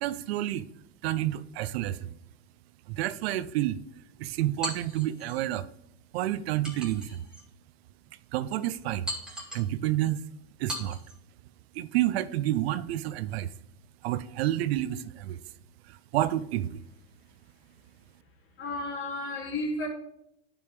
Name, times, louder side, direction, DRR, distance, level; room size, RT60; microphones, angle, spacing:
voice 1, 0.0-0.7 1.0-2.1 2.9-3.8 4.2-5.7 6.1-7.2 8.3-9.1 9.5-10.2 10.6-11.0 11.7-13.5 14.0-15.4 15.9-16.8, right 14 dB, 70° right, 0.6 m, -29 dB
sound 1, 4.6-5.4 6.6-7.5 8.0-8.1 9.1-9.7 10.7-11.2, equal, ahead, 3.6 m, -38 dB
voice 2, 18.6-19.9, left 2 dB, 40° left, 2.8 m, -32 dB
10.5 x 5.4 x 3.4 m
hypercardioid pair, 110°, 33 cm